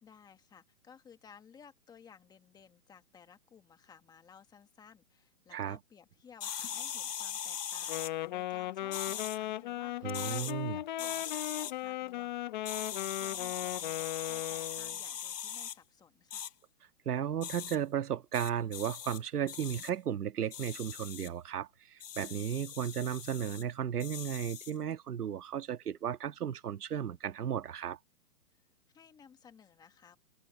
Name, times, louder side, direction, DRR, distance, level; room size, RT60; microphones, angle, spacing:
voice 1, 0.0-16.5 28.5-28.6 28.9-30.2, left 7 dB, 10° left, 1.4 m, -57 dB
sound 1, 6.4-8.1 8.9-9.4 10.1-10.5 11.0-11.7 12.6-15.8 16.3-16.5 17.4-17.8 18.3-19.2 19.5-19.9 20.5-21.3 22.0-23.6 24.0-24.7, left 8 dB, 85° left, 1.7 m, -40 dB
Wind instrument woodwind instrument, 7.8-15.0, left 14 dB, 30° left, 0.9 m, -37 dB
voice 2, 10.0-10.8 17.1-28.0, right 9 dB, 75° right, 1.6 m, -35 dB
open air
hypercardioid pair, 160°, 46 cm